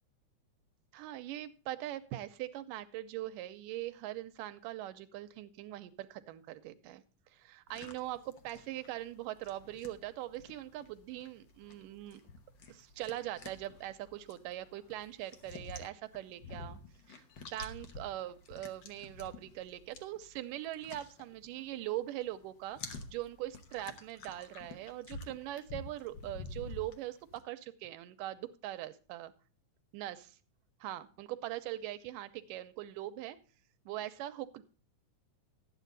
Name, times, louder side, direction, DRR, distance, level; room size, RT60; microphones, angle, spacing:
voice 1, 0.9-7.0 7.3-12.2 12.7-16.8 17.1-29.3 29.9-30.4 30.8-33.4 33.9-34.6, right 14 dB, 90° right, 11 dB, 2.3 m, -41 dB
sound 1, 7.7-21.9 22.2-27.4, left 3 dB, 80° left, 1.0 m, -50 dB
12.5 x 9.2 x 3.9 m, 0.37 s
omnidirectional pair, 3.7 m